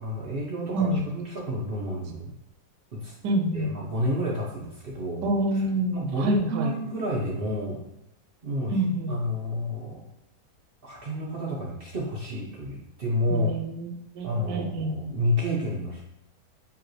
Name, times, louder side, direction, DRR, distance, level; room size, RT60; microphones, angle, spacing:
voice 1, 0.0-2.3 2.9-3.1 3.5-5.3 5.5-5.6 5.9-7.8 8.4-8.8 9.1-10.1 10.8-13.5 14.2-16.0, equal, 60° right, -3 dB, 0.6 m, -30 dB
voice 2, 3.2-3.8 5.2-6.7 8.7-9.1 13.3-15.0, right 1 dB, 80° right, 3 dB, 1.2 m, -27 dB
4.9 x 3.0 x 3.1 m, 0.86 s
omnidirectional pair, 1.9 m